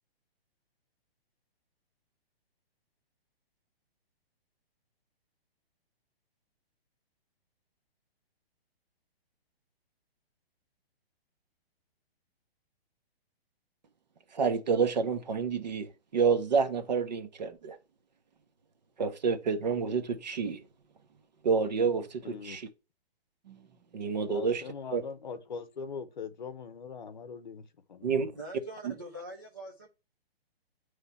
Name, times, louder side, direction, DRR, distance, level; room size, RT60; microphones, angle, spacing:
voice 1, 14.3-17.8 19.0-20.6 21.4-22.6 23.5-23.6 23.9-24.6 24.9-25.0 28.0-28.3 28.8-28.9, right 5 dB, 45° right, 0.9 m, -29 dB
voice 2, 22.2-22.6 24.3-27.6 27.9-28.3, left 5 dB, 45° left, 0.8 m, -41 dB
voice 3, 28.4-29.9, right 1 dB, 20° right, 0.4 m, -43 dB
9.4 x 3.3 x 5.5 m
hypercardioid pair, 180°, 31 cm